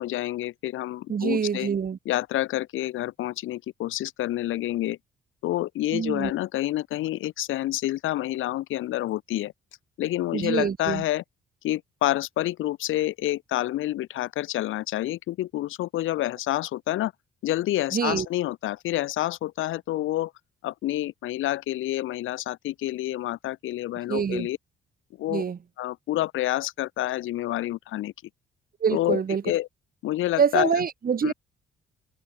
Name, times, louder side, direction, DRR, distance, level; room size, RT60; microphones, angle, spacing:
voice 1, 0.0-1.7 2.0-5.0 5.4-9.5 10.0-11.2 11.6-17.1 17.4-20.3 20.6-24.6 25.2-25.4 25.8-28.1 28.9-29.7 30.0-30.8 31.2-31.3, left 15 dB, 85° left, 6.3 m, -28 dB
voice 2, 1.1-2.0 5.9-6.3 10.3-11.0 17.9-18.3 24.1-24.5 25.3-25.6 28.8-29.4 30.4-31.3, right 7 dB, 45° right, 5.3 m, -25 dB
cardioid pair, 90°, 20 cm